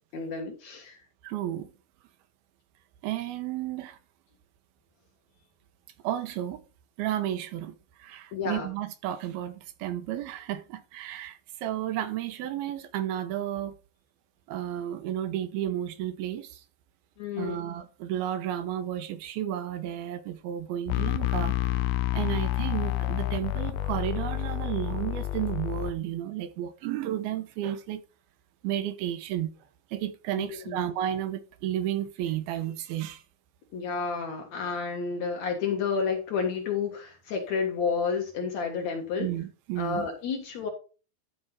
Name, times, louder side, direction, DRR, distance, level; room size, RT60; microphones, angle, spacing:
voice 1, 0.1-1.0 8.3-8.7 17.2-17.6 30.3-30.9 33.7-39.3 39.8-40.7, left 5 dB, 55° left, 2.4 m, -30 dB
voice 2, 1.2-1.7 3.0-4.0 6.0-6.6 7.0-13.7 14.5-16.6 17.4-21.6 22.1-28.0 28.6-29.5 29.9-33.2 39.2-40.1, right 11 dB, 85° right, 2.8 m, -32 dB
sound 1, 20.9-25.9, left 16 dB, 85° left, 2.6 m, -29 dB
12.0 x 4.7 x 4.4 m
omnidirectional pair, 4.4 m